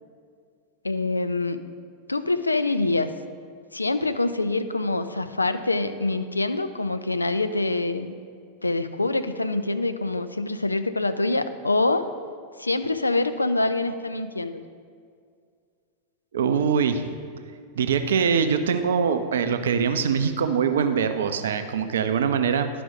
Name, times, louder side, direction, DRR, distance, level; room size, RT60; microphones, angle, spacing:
voice 1, 0.8-1.6 2.1-3.1 3.7-8.1 8.6-12.1 12.6-14.6, left 2 dB, 80° left, 11 dB, 0.4 m, -25 dB
voice 2, 16.3-17.2 17.8-22.8, right 6 dB, 65° right, 9 dB, 0.5 m, -23 dB
11.0 x 5.0 x 3.7 m, 2.1 s
figure-of-eight pair, 90°, 0 cm